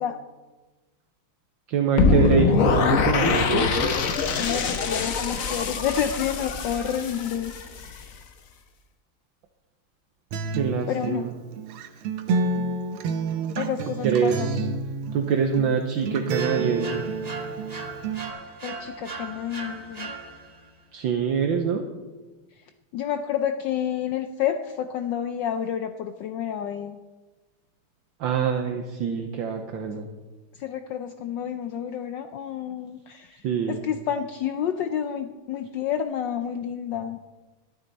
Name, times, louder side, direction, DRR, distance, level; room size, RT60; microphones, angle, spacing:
voice 1, 1.7-3.9 10.5-11.3 14.0-14.7 15.1-17.1 20.9-21.8 28.2-30.1 33.4-33.9, right 6 dB, 65° right, 5 dB, 1.5 m, -25 dB
sound 1, 2.0-8.0, left 4 dB, 50° left, 1.1 m, -23 dB
voice 2, 4.1-7.5 7.8-8.1 10.9-11.3 13.6-14.6 18.6-20.1 22.9-27.0 30.6-37.2, left 9 dB, 70° left, 8 dB, 1.1 m, -29 dB
Acoustic guitar, 10.3-18.3, right 4 dB, 85° right, 1.8 m, -29 dB
sound 2, 16.3-20.7, right 3 dB, 30° right, 0.8 m, -38 dB
13.5 x 12.5 x 4.1 m, 1.2 s
omnidirectional pair, 2.4 m